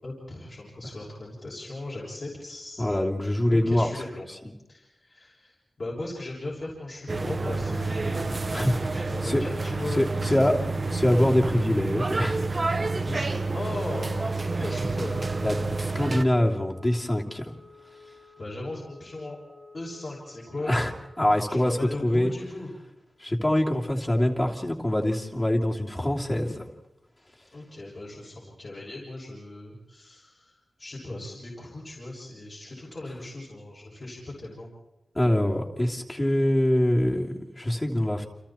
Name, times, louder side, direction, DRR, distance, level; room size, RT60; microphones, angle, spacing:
voice 1, 0.0-2.9 3.5-4.3 4.7-10.6 13.0-15.2 18.0-19.4 19.7-20.7 21.5-22.7 27.5-34.7, left 2 dB, 45° left, -6 dB, 6.6 m, -37 dB
voice 2, 2.8-3.9 8.5-8.7 9.2-9.4 10.0-10.5 10.9-12.5 15.4-17.5 20.6-20.9 21.2-22.3 23.2-26.6 35.1-38.2, left 1 dB, 20° left, -1 dB, 3.0 m, -24 dB
sound 1, 7.1-16.2, right 3 dB, 35° right, 1.2 m, -29 dB
Wind instrument woodwind instrument, 14.9-22.0, left 1 dB, 5° left, 1.2 m, -49 dB
30.0 x 28.0 x 4.4 m, 0.97 s
wide cardioid pair, 120°, 0 cm